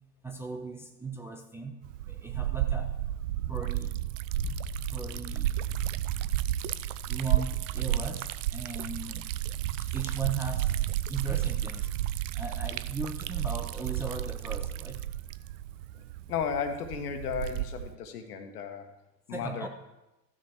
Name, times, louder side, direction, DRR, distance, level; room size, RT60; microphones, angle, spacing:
voice 1, 0.2-1.7 2.0-2.9 3.5-4.0 4.9-5.6 6.6-6.7 7.1-9.3 9.8-10.7 11.1-11.9 12.4-15.0 19.3-19.7, right 4 dB, 5° right, 2 dB, 0.5 m, -38 dB
Liquid, 1.8-17.9, right 13 dB, 55° right, 0.5 m, -32 dB
sound 1, 4.4-14.4, left 4 dB, 15° left, 1.0 m, -47 dB
voice 2, 16.3-18.9 19.3-19.7, left 6 dB, 65° left, 6 dB, 1.4 m, -34 dB
14.5 x 6.4 x 4.4 m, 0.97 s
figure-of-eight pair, 85°, 48 cm